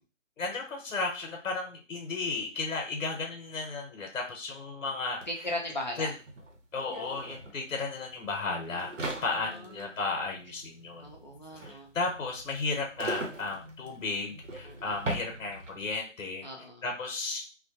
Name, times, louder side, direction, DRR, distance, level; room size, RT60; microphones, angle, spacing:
voice 1, 0.4-5.2 6.0-6.1 6.7-11.1 11.6-16.5 16.8-17.6, left 3 dB, 80° left, 2 dB, 0.9 m, -34 dB
sound 1, 5.2-5.3 5.5-16.0, right 2 dB, 70° right, 0.9 m, -41 dB
voice 2, 5.3-6.1 9.1-9.9 11.0-11.9 14.6-14.9 16.4-16.8, left 1 dB, 35° left, -1 dB, 0.4 m, -38 dB
2.3 x 2.1 x 2.7 m, 0.33 s
hypercardioid pair, 175°, 38 cm